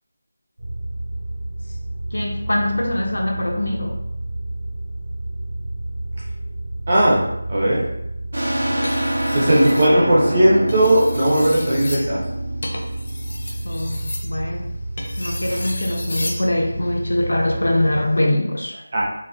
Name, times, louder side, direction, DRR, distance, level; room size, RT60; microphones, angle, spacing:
sound 1, 0.6-18.1, right 1 dB, 55° right, 1.0 m, -30 dB
voice 1, 2.1-4.0 13.6-14.7 15.2-18.8, left 1 dB, 90° left, 1 dB, 0.6 m, -23 dB
voice 2, 6.9-7.2 7.5-7.8 9.3-12.2 18.9-19.0, right 1 dB, 20° right, -6 dB, 0.5 m, -17 dB
sound 2, 8.3-13.6, right 1 dB, 75° right, 0.8 m, -27 dB
sound 3, 8.7-9.9 10.6-16.5 17.9-18.2, left 1 dB, 35° left, 0.4 m, -33 dB
4.0 x 2.0 x 2.5 m, 0.83 s
figure-of-eight pair, 180°, 0 cm